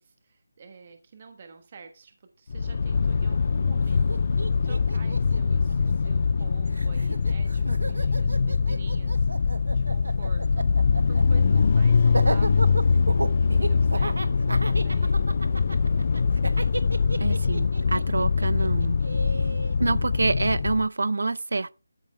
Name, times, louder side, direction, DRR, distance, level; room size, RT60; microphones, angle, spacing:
voice 1, 0.0-15.3, right 5 dB, 25° right, 1.3 m, -48 dB
sound 1, 2.5-20.9, left 5 dB, 35° left, 0.5 m, -23 dB
Laughter, 3.8-3.9 4.1-6.4 6.7-19.8, right 2 dB, 90° right, 1.3 m, -33 dB
voice 2, 17.2-19.0 19.8-21.7, right 3 dB, 65° right, 0.6 m, -27 dB
13.0 x 5.6 x 4.5 m
figure-of-eight pair, 175°, 0 cm